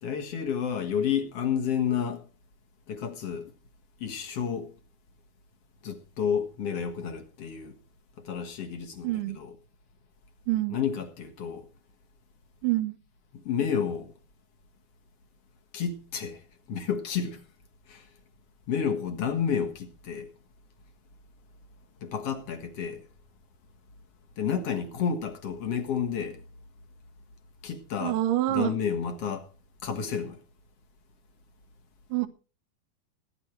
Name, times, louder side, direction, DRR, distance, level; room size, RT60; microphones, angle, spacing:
voice 1, 0.0-2.3 2.9-3.5 4.0-4.7 5.8-7.7 8.2-9.5 10.7-11.7 13.3-14.1 15.7-16.4 16.7-17.4 17.9-18.1 18.7-20.3 22.0-23.0 24.4-26.4 27.6-28.2 28.5-29.5 29.8-30.4, left 7 dB, 50° left, 2.2 m, -30 dB
voice 2, 9.0-9.4 10.5-10.8 12.6-13.0 28.0-28.7 32.1-32.3, right 15 dB, 70° right, 2.7 m, -26 dB
18.0 x 10.5 x 4.6 m
omnidirectional pair, 4.2 m